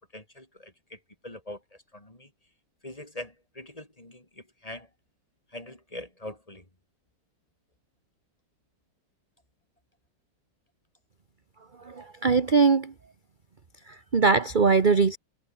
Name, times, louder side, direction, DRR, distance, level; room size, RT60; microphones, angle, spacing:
voice 1, 0.1-1.0 1.2-1.6 1.9-2.3 2.8-4.2 4.6-4.9 5.5-6.6, left 1 dB, 20° left, 3.7 m, -42 dB
voice 2, 11.8-12.9 13.9-15.2, right 4 dB, 30° right, 1.2 m, -22 dB
omnidirectional pair, 1.9 m